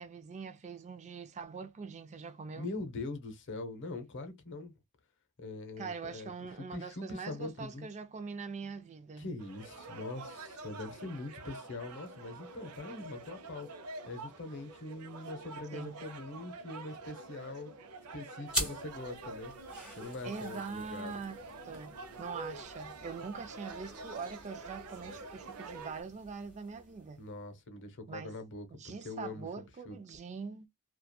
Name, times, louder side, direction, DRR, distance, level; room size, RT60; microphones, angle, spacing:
voice 1, 0.0-2.7 5.8-9.3 15.7-16.0 20.2-21.4 21.6-27.2 28.1-28.3 28.7-30.7, right 5 dB, 30° right, 0.3 m, -43 dB
voice 2, 2.5-4.7 5.4-6.3 6.7-7.9 9.2-13.7 14.1-17.7 18.1-19.5 19.9-21.1 27.2-29.5 29.8-30.0, left 2 dB, 55° left, 0.7 m, -42 dB
sound 1, 9.4-26.0, right 3 dB, 80° right, 0.6 m, -47 dB
sound 2, 18.5-27.5, equal, 5° right, 1.3 m, -44 dB
2.8 x 2.3 x 2.2 m
head